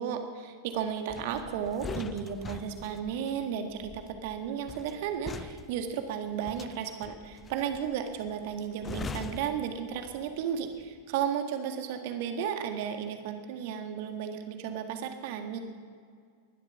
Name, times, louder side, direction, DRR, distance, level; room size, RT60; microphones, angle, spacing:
voice 1, 0.0-15.6, right 8 dB, 50° right, 6 dB, 1.7 m, -34 dB
sound 1, 1.1-10.4 10.7-11.0, left 6 dB, 20° left, 0.5 m, -43 dB
20.5 x 12.0 x 5.7 m, 2.1 s
figure-of-eight pair, 90°, 0 cm